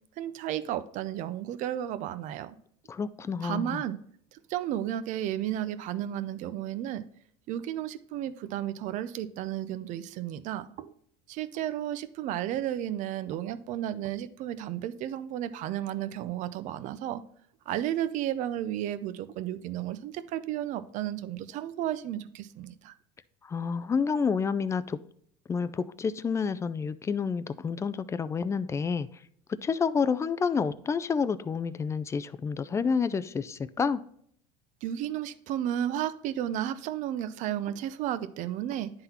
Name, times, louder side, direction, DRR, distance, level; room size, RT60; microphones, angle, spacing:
voice 1, 0.2-2.6 3.4-4.0 4.3-7.0 7.5-10.9 11.3-17.2 17.7-22.9 34.8-38.9, right 11 dB, 55° right, 0.5 m, -33 dB
voice 2, 2.9-3.8 23.4-25.0 25.5-29.1 29.6-34.0, left 5 dB, 20° left, 0.3 m, -29 dB
10.5 x 3.8 x 2.8 m
supercardioid pair, 115°, 15 cm